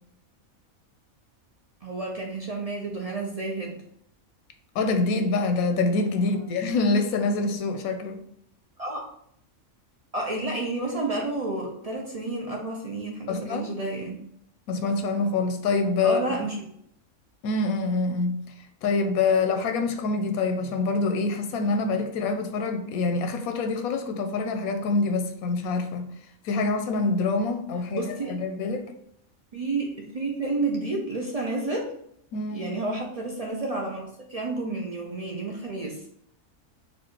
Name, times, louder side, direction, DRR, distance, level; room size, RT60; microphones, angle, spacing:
voice 1, 1.8-3.8 6.1-6.6 8.8-9.0 10.1-14.2 16.0-16.6 27.9-28.3 29.5-31.9 32.5-36.0, right 2 dB, 55° right, 0.4 m, -30 dB
voice 2, 4.7-8.2 13.3-13.8 14.7-16.5 17.4-18.5 18.8-26.1 26.4-28.9 32.3-32.7, left 3 dB, 90° left, 1.1 m, -26 dB
4.3 x 2.5 x 4.5 m
omnidirectional pair, 1.5 m